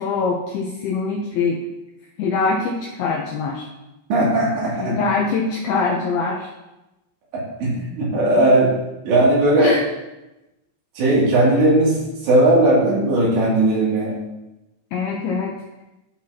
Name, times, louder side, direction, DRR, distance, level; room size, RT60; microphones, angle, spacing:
voice 1, 0.0-1.6 2.2-3.7 4.8-6.5 9.6-9.8 14.9-15.6, left 4 dB, 80° left, -1 dB, 2.3 m, -23 dB
voice 2, 4.1-4.9 7.6-8.7 9.0-9.8 11.0-14.1, right 1 dB, 70° right, -6 dB, 4.7 m, -17 dB
13.0 x 6.0 x 2.8 m, 1.0 s
omnidirectional pair, 5.3 m